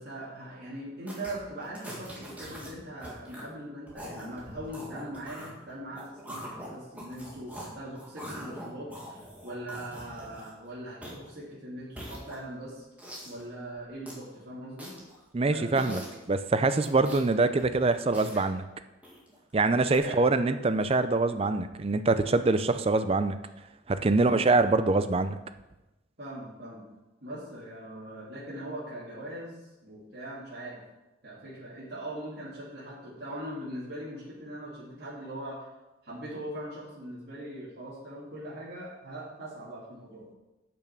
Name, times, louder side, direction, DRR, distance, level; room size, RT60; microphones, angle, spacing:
voice 1, 0.0-12.8 13.2-14.9 15.5-16.0 20.0-20.2 24.0-24.4 26.2-26.9 27.2-30.8 31.2-35.6 36.0-40.4, right 1 dB, 55° right, -9 dB, 2.8 m, -41 dB
sound 1, 1.1-1.3 1.6-2.7 3.0-3.5 3.9-7.7 8.0-10.6 11.0-11.3 11.8-12.6 13.0-13.4 13.8-14.2 14.8-15.2 15.8-16.2 16.8-17.3 17.6-18.5 19.0-19.4 19.9-20.0, equal, 10° right, 1.9 m, -43 dB
voice 2, 15.3-16.0 16.3-18.6 19.5-23.4 23.9-25.4, right 3 dB, 30° right, 11 dB, 0.4 m, -24 dB
8.8 x 6.1 x 6.0 m, 1.0 s
head